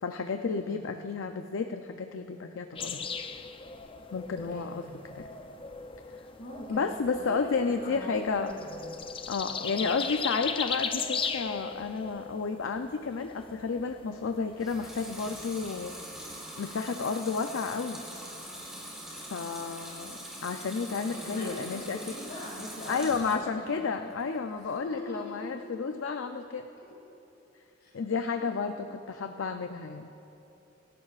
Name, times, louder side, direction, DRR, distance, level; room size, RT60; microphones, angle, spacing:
voice 1, 0.0-3.1 4.1-4.8 5.1-5.3 6.7-8.5 9.3-15.9 16.6-18.0 19.2-22.1 22.9-26.7 27.9-30.1, left 5 dB, 80° left, 6 dB, 0.5 m, -32 dB
voice 2, 0.5-1.2 4.4-5.2 6.4-7.0 7.2-8.9 9.5-9.8 21.0-23.2 23.6-23.9 24.4-24.5 24.8-25.7 26.8-26.9 27.8-27.9 28.3-28.7, left 1 dB, 55° left, -3 dB, 2.3 m, -43 dB
sound 1, 2.8-16.3, left 5 dB, 25° left, 0.5 m, -38 dB
Water tap faucet / Sink (filling or washing) / Liquid, 14.5-23.5 23.9-24.6, equal, 5° right, 2.9 m, -43 dB
24.5 x 12.0 x 2.5 m, 2.9 s
head